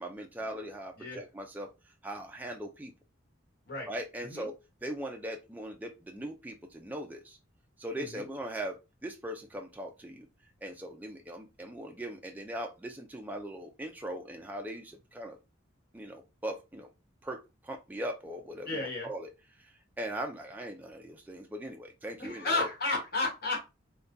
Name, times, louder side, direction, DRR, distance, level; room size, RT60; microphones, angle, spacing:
voice 1, 0.0-1.7 2.0-2.9 3.9-7.4 7.8-10.3 10.6-15.4 15.9-16.9 17.2-19.3 20.0-22.6, right 1 dB, 10° right, 0.3 m, -40 dB
voice 2, 18.7-19.1 22.2-23.6, left 2 dB, 50° left, 1.2 m, -32 dB
3.6 x 2.2 x 2.5 m
head